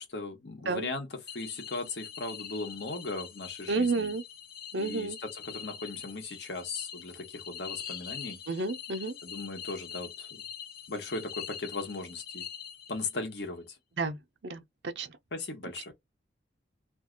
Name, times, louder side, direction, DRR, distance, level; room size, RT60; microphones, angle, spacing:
voice 1, 0.0-4.1 4.7-8.4 9.2-10.4 10.9-12.5 12.9-13.8 15.3-15.9, left 3 dB, 70° left, 1.0 m, -38 dB
sound 1, 1.3-13.2, left 9 dB, 55° left, 0.7 m, -44 dB
voice 2, 3.7-4.2 4.7-5.2 8.5-9.1 14.0-14.2 14.4-14.6 15.0-15.1, right 3 dB, 85° right, 0.7 m, -30 dB
2.7 x 2.3 x 3.7 m
head